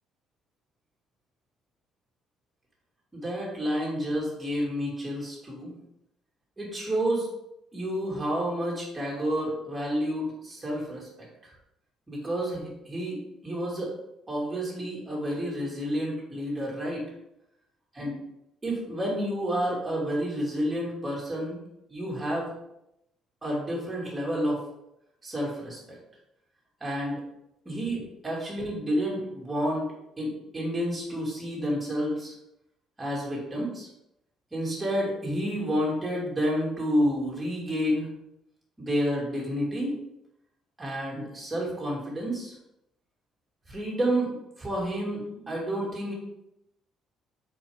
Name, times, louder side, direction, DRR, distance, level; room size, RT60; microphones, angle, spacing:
voice 1, 3.1-5.7 6.6-7.3 7.7-11.3 12.1-13.9 14.3-17.1 18.0-18.1 18.6-21.6 21.9-22.5 23.4-24.7 25.2-26.0 26.8-27.2 27.7-29.9 30.2-32.3 33.0-33.9 34.5-38.1 38.8-40.0 40.8-42.5 43.7-46.1, equal, 15° right, -3 dB, 2.4 m, -30 dB
6.8 x 4.8 x 3.6 m, 0.82 s
cardioid pair, 140°, 0 cm